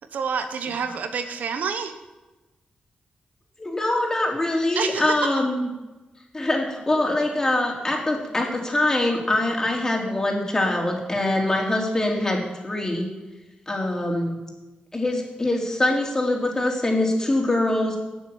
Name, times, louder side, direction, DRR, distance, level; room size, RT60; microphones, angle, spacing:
voice 1, 0.1-2.0 4.7-5.3, right 6 dB, 75° right, 8 dB, 1.2 m, -28 dB
voice 2, 3.6-5.7 6.3-13.1 13.7-14.4 14.9-18.0, left 1 dB, 20° left, 0 dB, 3.8 m, -23 dB
18.5 x 7.3 x 7.4 m, 1.1 s
cardioid pair, 80°, 3 cm